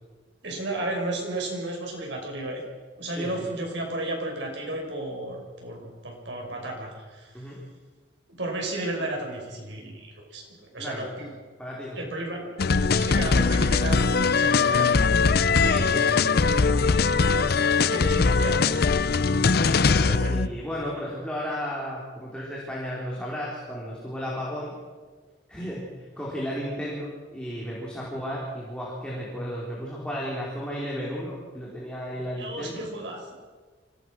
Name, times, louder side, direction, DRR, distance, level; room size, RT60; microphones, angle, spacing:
voice 1, 0.4-2.6 3.0-7.3 8.3-10.4 10.7-11.3 11.9-12.6 13.0-14.0 14.3-15.1 17.9-18.8 20.0-20.4 25.6-25.7 32.4-33.3, right 1 dB, 80° right, 0 dB, 6.0 m, -33 dB
voice 2, 3.1-3.5 7.3-7.6 10.8-11.1 11.6-12.0 15.6-16.6 19.1-19.5 20.3-24.7 25.5-32.8, equal, 5° left, -6 dB, 4.5 m, -34 dB
sound 1, 12.6-20.5, left 4 dB, 60° left, 0.6 m, -21 dB
25.0 x 17.5 x 6.4 m, 1.4 s
head